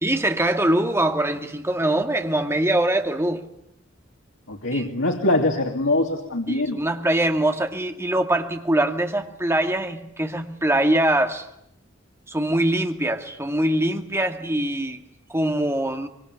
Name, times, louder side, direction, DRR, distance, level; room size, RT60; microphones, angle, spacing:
voice 1, 0.0-3.5 4.7-4.9 6.5-11.5 12.3-15.0 15.3-16.1, right 1 dB, 15° right, 2.3 m, -23 dB
voice 2, 4.5-6.8, left 2 dB, 85° left, 3.0 m, -23 dB
25.5 x 24.0 x 9.6 m
head